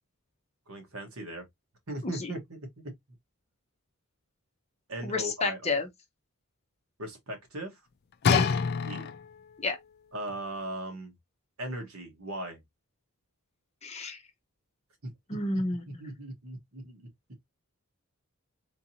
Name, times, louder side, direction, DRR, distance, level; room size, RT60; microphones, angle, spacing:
voice 1, 0.7-1.4 1.9-2.6 2.8-2.9 4.9-5.8 7.0-7.8 8.8-9.1 10.1-11.1 11.6-12.6 15.0-15.1 15.9-17.1, right 1 dB, 70° right, 1.4 m, -38 dB
voice 2, 2.0-2.3 5.0-5.9 8.2-8.5 9.6-9.8 13.8-14.2 15.3-16.0, left 3 dB, 30° left, 0.8 m, -31 dB
sound 1, 8.2-9.5 10.3-10.4, left 5 dB, 45° left, 0.3 m, -26 dB
3.7 x 2.8 x 2.8 m
head